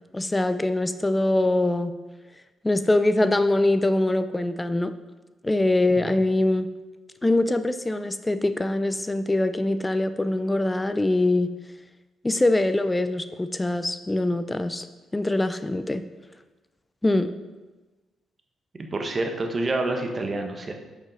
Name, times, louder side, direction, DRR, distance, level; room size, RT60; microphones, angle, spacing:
voice 1, 0.1-1.9 2.6-4.9 5.4-6.7 7.2-11.5 12.2-14.9 15.1-16.0 17.0-17.3, left 2 dB, 15° left, 11 dB, 0.5 m, -23 dB
voice 2, 18.9-20.7, right 2 dB, 30° right, 3 dB, 1.1 m, -28 dB
7.3 x 5.4 x 5.0 m, 1.2 s
cardioid pair, 90°, 0 cm